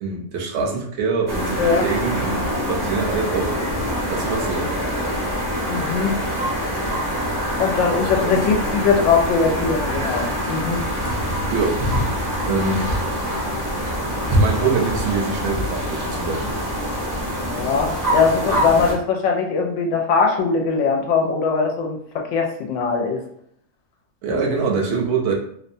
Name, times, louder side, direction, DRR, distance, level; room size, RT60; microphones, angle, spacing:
voice 1, 0.0-3.6 4.1-4.7 8.1-8.6 11.5-11.8 12.4-12.9 14.3-16.4 24.2-25.3, right 4 dB, 60° right, -1 dB, 0.8 m, -24 dB
sound 1, 1.3-18.9, equal, 25° right, 0.4 m, -24 dB
voice 2, 5.7-6.1 7.6-10.8 17.4-23.2, left 5 dB, 70° left, 1 dB, 0.9 m, -21 dB
2.7 x 2.1 x 2.6 m, 0.67 s
omnidirectional pair, 1.4 m